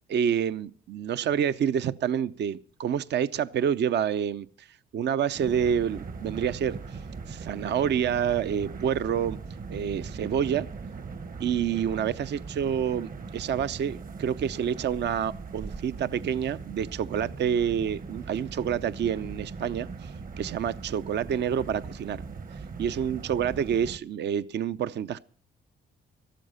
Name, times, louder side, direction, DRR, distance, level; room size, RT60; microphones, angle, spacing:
voice 1, 0.1-4.7 4.9-7.0 7.3-9.4 9.7-10.7 11.4-22.2 22.8-25.2, right 8 dB, 60° right, 14 dB, 0.6 m, -28 dB
sound 1, 5.3-24.0, right 4 dB, 45° right, 1.3 m, -40 dB
13.0 x 13.0 x 5.5 m, 0.43 s
cardioid pair, 90°, 20 cm